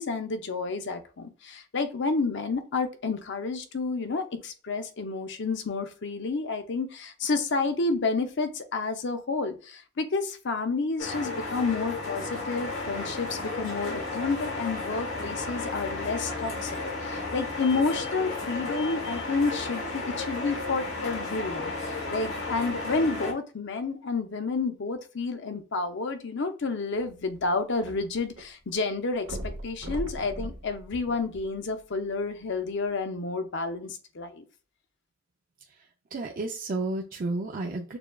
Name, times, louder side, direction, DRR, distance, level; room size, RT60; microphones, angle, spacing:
voice 1, 0.0-34.5, left 3 dB, 60° left, 7 dB, 0.7 m, -30 dB
sound 1, 11.0-23.3, left 3 dB, 80° left, 1.2 m, -33 dB
sound 2, 27.0-28.4 28.7-28.8 29.2-31.8 32.5-32.6, right 1 dB, 75° right, 0.9 m, -39 dB
voice 2, 35.7-38.0, right 2 dB, 45° right, 2 dB, 0.4 m, -32 dB
6.7 x 2.3 x 2.3 m, 0.36 s
head